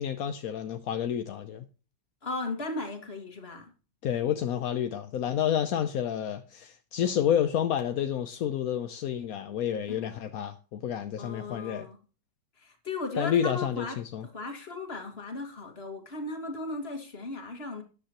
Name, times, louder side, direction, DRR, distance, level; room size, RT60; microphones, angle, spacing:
voice 1, 0.0-1.7 4.0-11.9 13.1-13.8 14.1-14.3, left 9 dB, 65° left, 0.9 m, -29 dB
voice 2, 2.2-3.7 9.9-10.0 11.2-12.0 12.6-17.8, left 2 dB, 30° left, 2.2 m, -36 dB
13.0 x 9.6 x 3.0 m
omnidirectional pair, 2.1 m